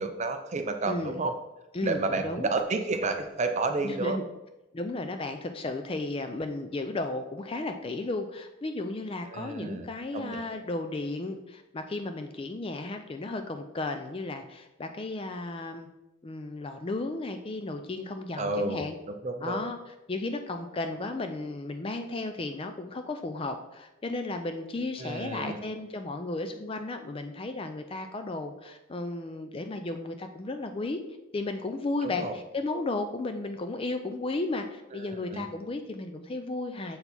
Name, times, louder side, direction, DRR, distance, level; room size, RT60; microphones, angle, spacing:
voice 1, 0.0-1.3 1.8-4.2 9.3-9.9 10.1-10.4 18.4-18.8 19.2-19.6 25.0-25.6 32.0-32.3 34.9-35.5, right 3 dB, 30° right, 7 dB, 0.5 m, -31 dB
voice 2, 0.9-1.2 1.7-2.5 3.8-4.2 4.7-15.9 16.2-19.0 19.4-19.8 20.1-31.0 31.3-37.0, left 2 dB, 25° left, 7 dB, 0.4 m, -34 dB
6.7 x 4.4 x 4.2 m, 0.98 s
head